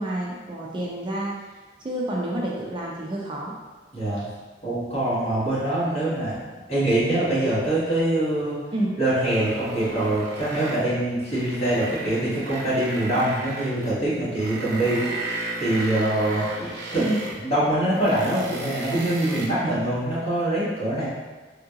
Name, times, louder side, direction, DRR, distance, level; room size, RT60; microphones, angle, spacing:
voice 1, 0.0-1.3 1.8-3.5 8.7-9.0 17.0-17.2, right 1 dB, 25° right, -3 dB, 0.4 m, -28 dB
voice 2, 3.9-4.2 4.6-6.4 6.7-8.6 9.0-15.0 15.6-17.1 17.3-21.1, right 1 dB, 35° left, -11 dB, 1.4 m, -24 dB
sound 1, 9.3-10.9 11.2-14.0 14.4-17.4 17.8-19.5, right 2 dB, 85° right, 0.7 m, -34 dB
3.6 x 2.8 x 2.4 m, 1.3 s
head